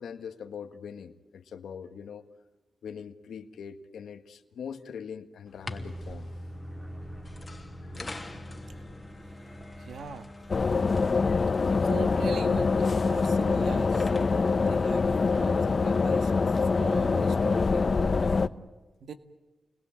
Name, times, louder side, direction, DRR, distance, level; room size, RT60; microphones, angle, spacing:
voice 1, 0.0-2.2 2.8-6.3 7.9-8.2, left 7 dB, 90° left, 7 dB, 1.6 m, -42 dB
sound 1, 5.5-15.8, left 2 dB, 20° left, 2.8 m, -47 dB
sound 2, 5.6-18.1, equal, 25° right, 4.2 m, -45 dB
voice 2, 9.8-10.3 11.6-18.3 19.0-19.1, right 5 dB, 85° right, 9 dB, 1.8 m, -41 dB
sound 3, 10.5-18.5, left 4 dB, 45° left, 0.9 m, -24 dB
29.0 x 21.5 x 8.9 m, 1.2 s
cardioid pair, 75°, 0 cm